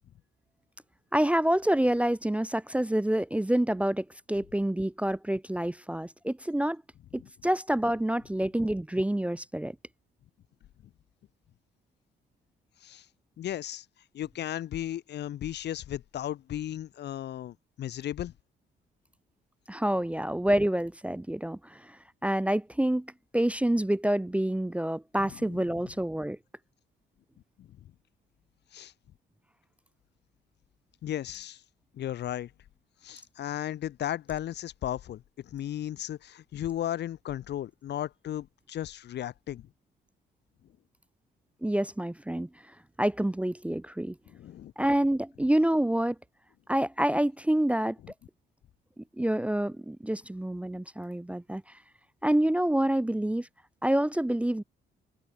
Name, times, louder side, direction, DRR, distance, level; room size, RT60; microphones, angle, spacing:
voice 1, 1.1-6.8 7.1-9.8 19.7-22.0 22.2-26.4 41.6-42.5 43.0-44.2 44.8-46.2 46.7-48.0 49.0-51.6 52.2-53.5 53.8-54.6, right 1 dB, 5° right, 0.5 m, -27 dB
voice 2, 13.4-13.9 14.1-18.3 25.2-25.6 27.6-27.7 28.7-28.9 31.0-31.6 31.9-32.5 33.0-39.7 44.3-44.7 48.0-48.1, left 11 dB, 60° left, 0.6 m, -35 dB
cardioid pair, 90°, 20 cm